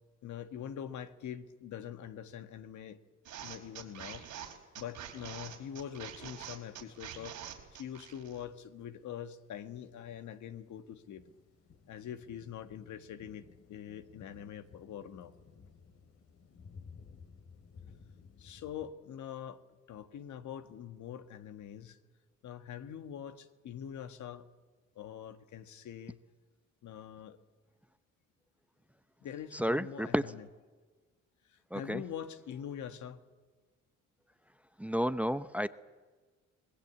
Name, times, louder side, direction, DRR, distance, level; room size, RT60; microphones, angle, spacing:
voice 1, 0.2-3.0 3.4-4.2 4.7-7.4 7.7-11.3 11.9-13.4 13.7-15.3 18.4-19.6 19.9-22.0 22.4-24.5 24.9-26.2 26.8-27.4 29.2-30.5 31.4-33.2, left 9 dB, 75° left, 9 dB, 1.6 m, -44 dB
sound 1, 3.2-8.5, right 9 dB, 80° right, 4.2 m, -46 dB
sound 2, 3.5-5.8 6.1-6.3 6.7-7.1 7.3-18.9, left 5 dB, 55° left, 2.6 m, -57 dB
voice 2, 29.5-30.2 31.7-32.0 34.8-35.7, equal, 5° right, 13 dB, 0.7 m, -31 dB
25.0 x 20.0 x 8.3 m, 1.4 s
cardioid pair, 90°, 30 cm